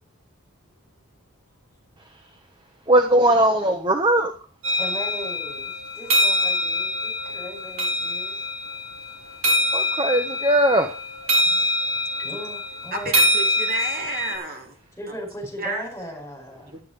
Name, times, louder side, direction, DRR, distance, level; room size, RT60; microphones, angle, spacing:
voice 1, 2.9-4.4 9.7-10.9, right 1 dB, 20° right, 6 dB, 1.0 m, -19 dB
sound 1, 4.6-14.3, left 1 dB, 70° right, 4.1 m, -24 dB
voice 2, 4.8-8.4 11.3-13.3 15.0-16.7, equal, 10° left, 0 dB, 4.8 m, -38 dB
voice 3, 12.9-14.7 15.6-15.9 16.7-16.8, right 2 dB, 40° right, 2 dB, 2.8 m, -31 dB
12.0 x 10.0 x 5.1 m, 0.36 s
head